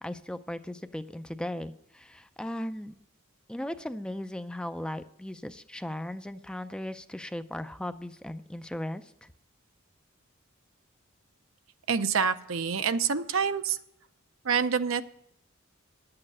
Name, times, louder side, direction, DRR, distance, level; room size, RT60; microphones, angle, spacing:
voice 1, 0.0-2.9 3.5-9.3, left 1 dB, 5° left, 10 dB, 0.4 m, -37 dB
voice 2, 11.9-13.8 14.4-15.0, right 6 dB, 70° right, 11 dB, 0.6 m, -27 dB
11.0 x 8.7 x 5.4 m, 0.77 s
head